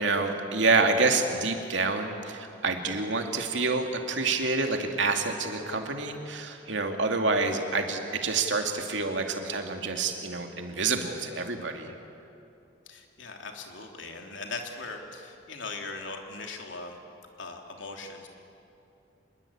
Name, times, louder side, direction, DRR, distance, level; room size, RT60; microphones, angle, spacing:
voice 1, 0.0-11.9, right 3 dB, 75° right, 4 dB, 2.5 m, -27 dB
voice 2, 12.9-17.0 17.4-18.3, left 3 dB, 80° left, 3 dB, 3.1 m, -39 dB
26.5 x 21.5 x 8.8 m, 2.7 s
head